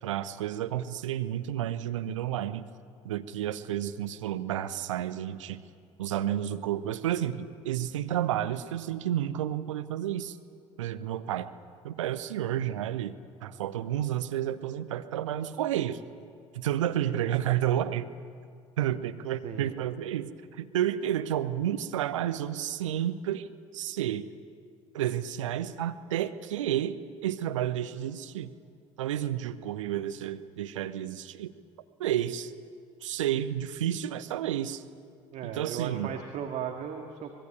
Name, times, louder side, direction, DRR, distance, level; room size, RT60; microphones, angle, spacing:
voice 1, 0.0-2.7 3.0-5.6 6.0-10.4 10.8-11.5 11.8-16.0 16.5-18.1 18.8-23.5 23.7-24.2 24.9-27.0 27.2-28.5 29.0-31.5 32.0-32.5 33.0-34.8 35.4-36.1, right 11 dB, 70° right, 10 dB, 1.1 m, -31 dB
voice 2, 19.4-19.7 35.3-37.3, right 8 dB, 45° right, 4 dB, 2.0 m, -36 dB
24.5 x 20.5 x 9.1 m, 2.3 s
figure-of-eight pair, 65°, 17 cm